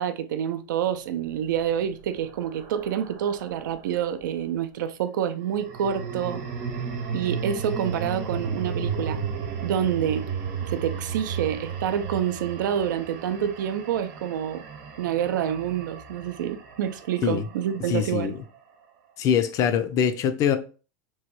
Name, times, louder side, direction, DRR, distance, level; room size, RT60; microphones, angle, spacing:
voice 1, 0.0-6.4 7.1-9.2 9.6-10.3 10.7-14.6 15.0-18.4, right 9 dB, 90° right, 0.4 m, -27 dB
sound 1, 1.3-3.8 5.4-17.7, right 5 dB, 55° right, 0.9 m, -34 dB
voice 2, 17.9-18.4 19.2-20.6, left 8 dB, 35° left, 0.4 m, -23 dB
3.0 x 2.2 x 3.0 m
supercardioid pair, 140°, 10 cm